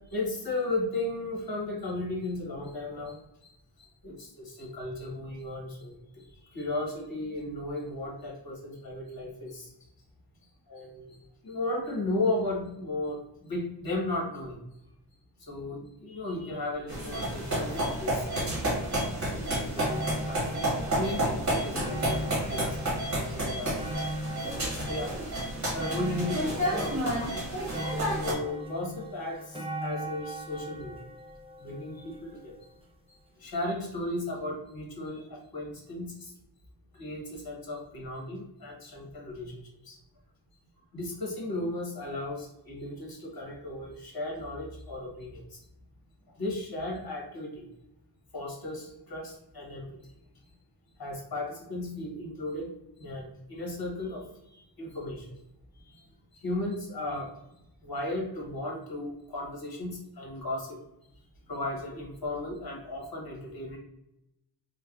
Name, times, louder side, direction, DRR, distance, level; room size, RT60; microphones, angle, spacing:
voice 1, 0.1-3.2 3.4-3.5 4.0-6.2 6.5-9.7 10.7-11.2 11.4-14.6 15.4-18.3 18.5-18.7 19.1-22.8 23.1-24.1 24.5-25.1 25.7-27.4 28.2-31.0 31.6-32.5 33.4-36.3 36.9-39.5 39.9-40.0 40.9-45.6 46.4-47.7 48.3-49.9 51.0-52.7 53.0-54.2 54.5-55.3 56.3-57.3 57.8-60.8 61.5-63.8, left 2 dB, 55° left, -1 dB, 1.0 m, -35 dB
sound 1, 16.9-28.3, right 1 dB, 40° right, 1.0 m, -30 dB
sound 2, 19.5-32.7 33.4-33.5, equal, 15° right, 0.5 m, -39 dB
3.2 x 2.1 x 2.3 m, 0.84 s
wide cardioid pair, 90°, 45 cm